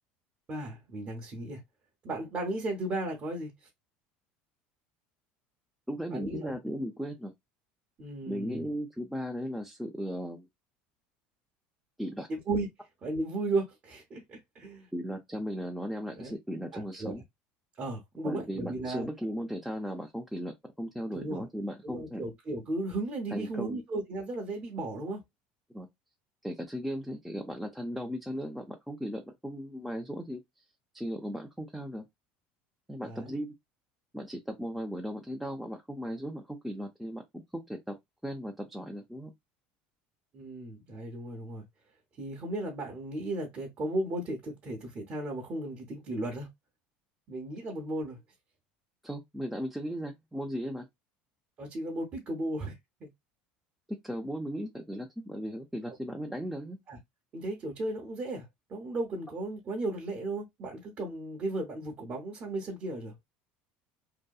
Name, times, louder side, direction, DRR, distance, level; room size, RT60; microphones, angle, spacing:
voice 1, 0.5-1.6 2.0-3.5 6.1-6.5 8.0-8.7 12.3-12.7 13.0-14.9 16.2-16.3 16.7-17.1 17.8-19.1 21.1-21.4 21.8-25.2 33.0-33.3 40.3-41.6 42.2-46.5 47.3-48.2 51.6-52.8 53.0-53.1 56.9-57.0 57.3-63.1, right 2 dB, 35° right, 0.8 m, -35 dB
voice 2, 5.9-7.3 8.3-10.5 12.0-12.3 14.9-17.2 18.2-22.3 23.3-23.8 25.7-25.9 26.4-30.4 30.9-32.0 32.9-33.5 34.1-38.0 38.2-39.3 49.0-50.9 54.0-56.8, equal, ahead, 0.4 m, -37 dB
2.7 x 2.2 x 2.3 m
supercardioid pair, 110°, 5 cm